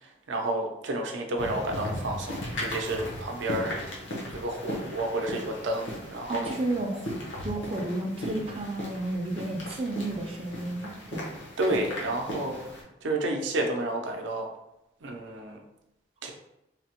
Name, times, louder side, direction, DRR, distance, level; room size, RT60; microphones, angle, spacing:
voice 1, 0.0-3.8 4.3-6.5 11.6-12.6 13.0-14.5 15.0-15.6 16.2-16.3, right 1 dB, 80° right, 2 dB, 0.5 m, -30 dB
sound 1, 1.4-12.8, left 1 dB, 80° left, 0.8 m, -37 dB
voice 2, 6.3-11.3, right 2 dB, 30° right, 1 dB, 0.4 m, -32 dB
3.2 x 2.0 x 2.9 m, 0.87 s
head